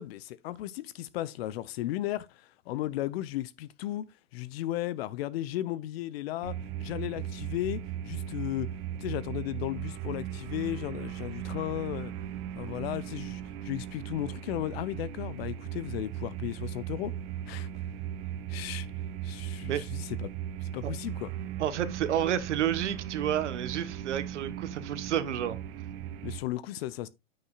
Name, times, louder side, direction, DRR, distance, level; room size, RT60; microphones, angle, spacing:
voice 1, 0.0-8.7 9.0-12.1 12.5-17.1 17.5-17.7 18.5-18.9 19.2-20.3 20.6-21.3 26.2-27.1, left 14 dB, 55° left, 0.8 m, -35 dB
sound 1, 6.4-26.4, right 10 dB, 50° right, 1.1 m, -37 dB
voice 2, 21.6-25.6, right 10 dB, 65° right, 1.3 m, -30 dB
9.4 x 8.8 x 2.4 m
figure-of-eight pair, 95°, 38 cm